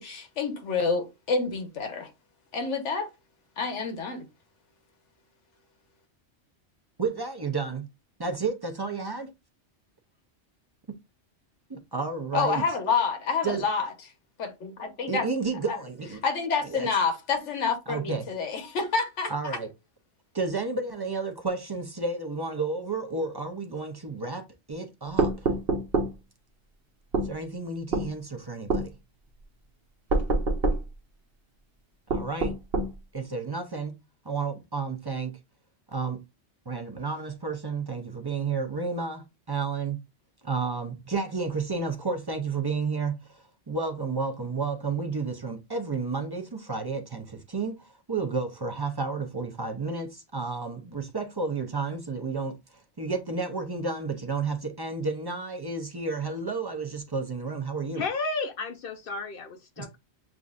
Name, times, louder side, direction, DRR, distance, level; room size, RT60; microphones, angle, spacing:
voice 1, 0.0-2.1 2.5-3.1 3.6-4.2 12.3-13.9 14.4-15.3 15.7-15.8 16.2-19.6, left 5 dB, 80° left, 1.3 m, -28 dB
voice 2, 7.0-7.9 8.2-9.3 11.7-12.6 13.4-13.6 15.1-16.2 16.7-16.9 17.9-18.3 19.3-19.7 20.3-25.5 27.2-28.9 32.1-32.5 33.1-33.9 34.2-35.3 35.9-36.2 36.7-40.0 40.4-52.6 53.0-58.0 59.8-59.9, right 4 dB, 30° right, 0.4 m, -31 dB
sound 1, 25.2-26.1 27.1-27.3 27.9-28.1 28.7-28.9 30.1-30.8 32.1-32.9, right 3 dB, 55° right, 1.1 m, -25 dB
voice 3, 58.0-60.0, left 4 dB, 60° left, 0.6 m, -32 dB
6.9 x 2.5 x 2.4 m
omnidirectional pair, 1.2 m